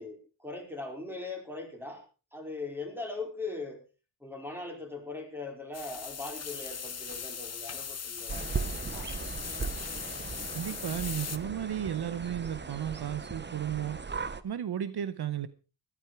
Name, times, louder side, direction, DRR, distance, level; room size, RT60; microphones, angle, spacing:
voice 1, 0.0-2.0 2.3-3.8 4.2-9.1, left 3 dB, 5° right, 2 dB, 4.7 m, -40 dB
sound 1, 5.7-11.4, left 6 dB, 35° left, 0.9 m, -39 dB
sound 2, 8.3-14.4, right 4 dB, 25° right, 0.9 m, -38 dB
voice 2, 10.5-14.0 14.4-15.5, right 10 dB, 60° right, 14 dB, 0.8 m, -34 dB
14.0 x 12.5 x 4.7 m, 0.34 s
wide cardioid pair, 125°, 43 cm